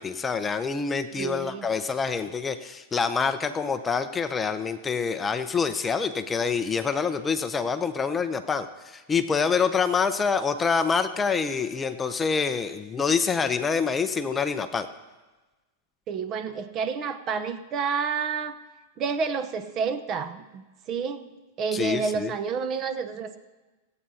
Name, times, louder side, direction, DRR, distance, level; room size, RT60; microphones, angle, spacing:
voice 1, 0.0-14.9 21.7-22.3, left 5 dB, 15° left, 9 dB, 0.5 m, -26 dB
voice 2, 1.1-1.7 16.1-18.5 19.0-21.3 21.6-23.4, right 5 dB, 35° right, 11 dB, 0.7 m, -29 dB
26.0 x 8.8 x 2.8 m, 1.2 s
supercardioid pair, 140°, 0 cm